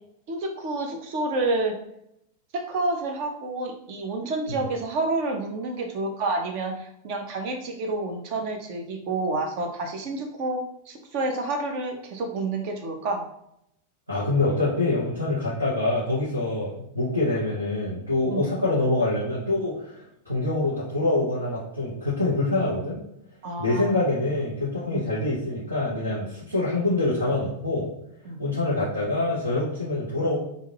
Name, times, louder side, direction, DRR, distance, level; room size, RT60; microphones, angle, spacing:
voice 1, 0.3-1.8 2.5-13.3 18.3-18.5 23.4-23.9 24.9-25.1 28.2-28.4, right 2 dB, 45° right, 3 dB, 0.7 m, -29 dB
voice 2, 14.1-23.0 23.6-27.9 28.4-30.4, left 2 dB, 80° right, -9 dB, 1.2 m, -25 dB
3.6 x 2.6 x 2.9 m, 0.76 s
figure-of-eight pair, 90°, 0 cm